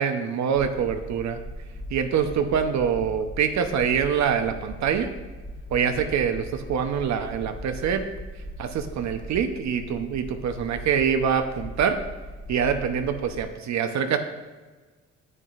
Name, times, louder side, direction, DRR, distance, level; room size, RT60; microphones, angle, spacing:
voice 1, 0.0-1.4 1.9-5.1 5.7-8.0 8.6-12.0 12.5-14.2, right 7 dB, 65° right, 7 dB, 0.8 m, -25 dB
sound 1, 0.5-13.5, equal, 10° left, 1.1 m, -39 dB
9.7 x 7.7 x 2.5 m, 1.3 s
cardioid pair, 90°, 30 cm